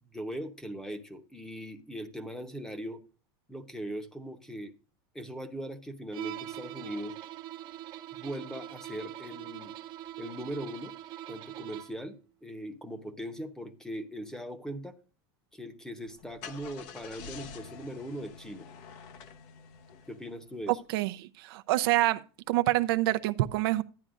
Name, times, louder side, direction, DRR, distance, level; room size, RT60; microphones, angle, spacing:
voice 1, 0.0-3.0 3.5-4.7 5.1-7.1 8.1-9.7 10.2-10.9 11.3-15.0 15.5-18.7 20.1-20.8, equal, 5° left, 0.9 m, -40 dB
Bowed string instrument, 6.1-12.1, right 13 dB, 40° right, 0.8 m, -42 dB
Car / Engine starting, 16.0-20.7, left 6 dB, 55° left, 0.9 m, -47 dB
voice 2, 20.7-22.2 22.5-23.8, right 17 dB, 70° right, 0.5 m, -27 dB
11.0 x 9.6 x 2.5 m
supercardioid pair, 150°, 13 cm